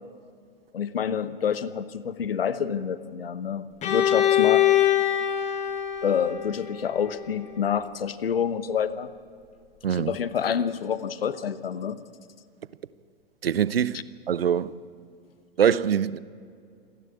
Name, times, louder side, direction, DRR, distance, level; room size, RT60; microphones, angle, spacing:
voice 1, 0.7-4.7 6.0-9.1 9.9-12.0 13.9-14.0, left 7 dB, 70° left, 1.0 m, -28 dB
Bowed string instrument, 3.8-7.6, left 11 dB, 25° left, 1.9 m, -24 dB
voice 2, 9.8-10.1 13.4-14.0 14.3-14.7 15.6-16.2, right 8 dB, 75° right, 0.8 m, -23 dB
27.5 x 11.0 x 8.6 m
figure-of-eight pair, 110°, 30 cm